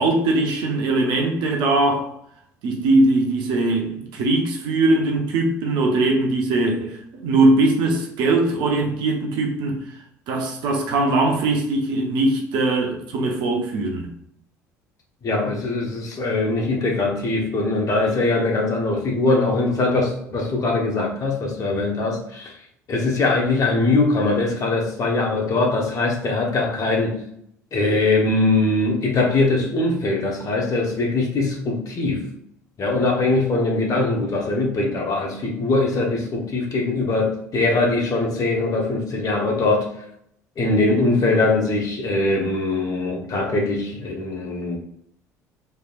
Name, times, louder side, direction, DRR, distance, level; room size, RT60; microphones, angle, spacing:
voice 1, 0.0-2.1 2.6-9.8 10.3-14.1, right 2 dB, 60° right, 0.8 m, -20 dB
voice 2, 15.2-22.5 22.9-27.2 27.7-32.3 32.8-39.9 40.6-44.8, left 2 dB, 40° left, 1.2 m, -21 dB
4.5 x 3.3 x 2.5 m
figure-of-eight pair, 55°, 9 cm